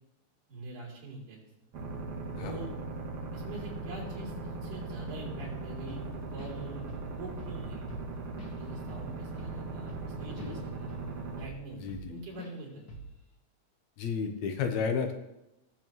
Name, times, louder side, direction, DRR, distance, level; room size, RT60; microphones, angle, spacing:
voice 1, 0.5-1.4 2.4-2.7 3.3-4.3 4.6-6.0 6.3-6.8 7.2-7.9 8.6-10.9 11.4-12.8, right 2 dB, 85° right, -4 dB, 4.7 m, -44 dB
sound 1, 1.7-11.5, right 3 dB, 60° right, 2.2 m, -39 dB
voice 2, 2.4-2.7 10.4-10.6 11.7-12.2 14.0-15.1, left 6 dB, 75° left, 5 dB, 2.2 m, -32 dB
Drum kit / Drum, 5.4-5.6 5.9-6.6 6.9-7.1 7.4-10.6 10.9-12.1 12.4-12.6 12.9-13.2, right 2 dB, 40° left, 1.4 m, -45 dB
18.0 x 7.4 x 3.1 m, 0.91 s
omnidirectional pair, 3.4 m